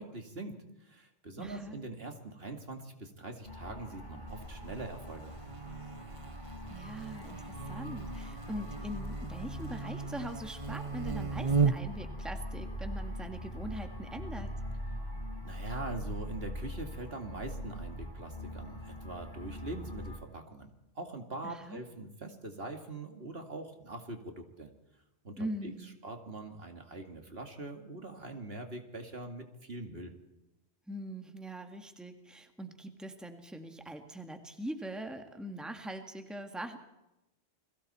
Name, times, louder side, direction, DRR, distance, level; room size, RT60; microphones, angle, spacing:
voice 1, 0.0-5.3 15.4-24.7 25.2-25.7 26.0-30.1, right 2 dB, 60° right, 4 dB, 2.4 m, -43 dB
voice 2, 1.4-1.8 6.7-14.5 21.4-21.8 25.4-26.0 30.9-36.8, right 1 dB, ahead, 5 dB, 1.7 m, -42 dB
sound 1, 3.5-20.2, equal, 40° left, 5.6 m, -42 dB
Buzz, 4.3-12.1, right 5 dB, 35° right, 0.7 m, -36 dB
29.5 x 21.5 x 4.3 m, 0.92 s
omnidirectional pair, 1.1 m